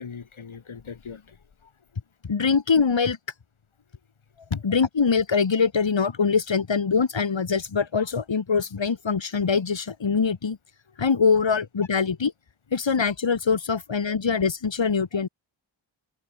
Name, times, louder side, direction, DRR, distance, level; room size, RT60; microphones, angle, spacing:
voice 1, 0.0-1.4 4.4-4.6 11.5-11.6 15.1-15.3, left 6 dB, 85° left, 2.5 m, -36 dB
voice 2, 2.3-3.2 4.6-10.6 11.0-12.3 12.7-15.3, left 5 dB, 65° left, 2.4 m, -23 dB
wide cardioid pair, 60°, 47 cm